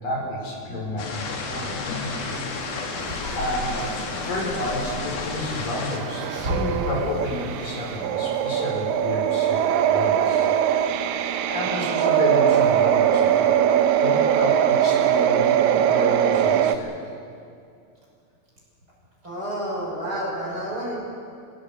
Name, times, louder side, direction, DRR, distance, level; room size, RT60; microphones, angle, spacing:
voice 1, 0.0-1.8 3.3-4.0 4.2-10.5 11.5-13.5 14.0-17.0, left 1 dB, 65° left, -1 dB, 5.9 m, -30 dB
voice 2, 0.7-1.0 1.4-1.8 3.1-3.2 6.2-6.6 19.2-21.0, equal, 25° right, -4 dB, 6.4 m, -31 dB
sound 1, 1.0-6.0, left 4 dB, 85° left, 4.2 m, -31 dB
sound 2, 2.0-8.0, right 2 dB, 50° right, 3.5 m, -40 dB
sound 3, 5.9-16.8, right 9 dB, 75° right, 2.5 m, -21 dB
26.0 x 17.0 x 8.2 m, 2.4 s
omnidirectional pair, 4.2 m